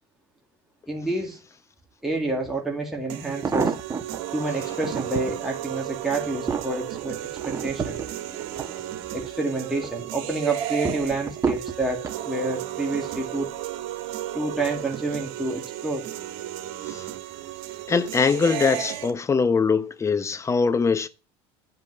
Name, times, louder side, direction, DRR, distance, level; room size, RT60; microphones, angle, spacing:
voice 1, 0.9-1.4 2.0-3.7 4.3-8.0 9.1-13.5 14.3-16.1, right 2 dB, ahead, 2.4 m, -29 dB
sound 1, 2.4-2.5 3.2-4.2 4.7-5.4 5.9-9.3 9.7-10.2 10.8-12.2 13.0-13.3 13.6-13.7, right 5 dB, 25° right, 1.3 m, -30 dB
sound 2, 3.1-19.1, right 12 dB, 80° right, 1.7 m, -34 dB
voice 2, 17.9-21.1, left 5 dB, 20° left, 1.0 m, -22 dB
10.5 x 5.3 x 7.5 m
supercardioid pair, 110°, 13 cm